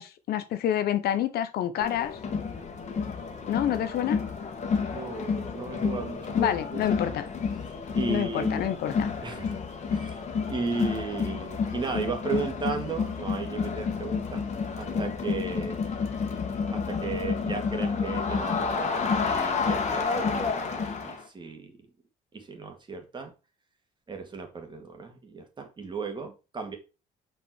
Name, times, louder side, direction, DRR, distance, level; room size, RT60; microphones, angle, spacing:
voice 1, 0.0-2.2 3.5-4.2 6.4-7.3 8.1-9.1, left 11 dB, 65° left, 0.8 m, -28 dB
Crowd, 1.8-21.2, left 5 dB, 40° left, 1.6 m, -30 dB
voice 2, 4.9-6.8 7.9-8.7 9.2-9.6 9.9-10.2 10.5-14.4 14.8-15.8 16.7-21.7 22.3-23.3 24.1-26.8, right 4 dB, 25° right, 1.9 m, -35 dB
5.5 x 4.8 x 4.6 m
cardioid pair, 110°, 17 cm